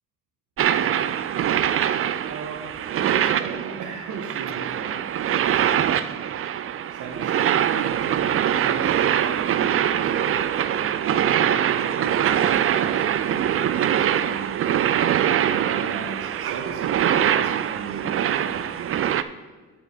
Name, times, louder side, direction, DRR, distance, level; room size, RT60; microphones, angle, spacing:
sound 1, 0.6-19.2, right 10 dB, 45° right, 0.5 m, -23 dB
voice 1, 2.2-5.0 5.6-5.9 6.9-14.6 15.3-18.9, right 5 dB, 80° right, 1 dB, 1.4 m, -36 dB
7.2 x 5.9 x 6.8 m, 1.4 s
cardioid pair, 90°, 30 cm